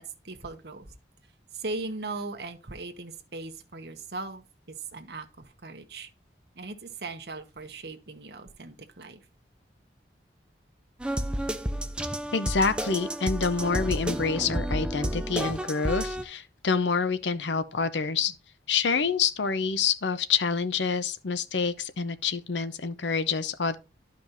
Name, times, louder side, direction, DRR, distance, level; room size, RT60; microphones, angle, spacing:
voice 1, 0.2-0.9 1.5-6.1 6.6-9.2, right 3 dB, 65° right, 1.1 m, -39 dB
sound 1, 11.0-16.2, equal, 5° right, 0.5 m, -31 dB
voice 2, 12.3-18.3 18.7-23.8, left 5 dB, 85° left, 0.7 m, -27 dB
12.0 x 5.2 x 2.6 m
head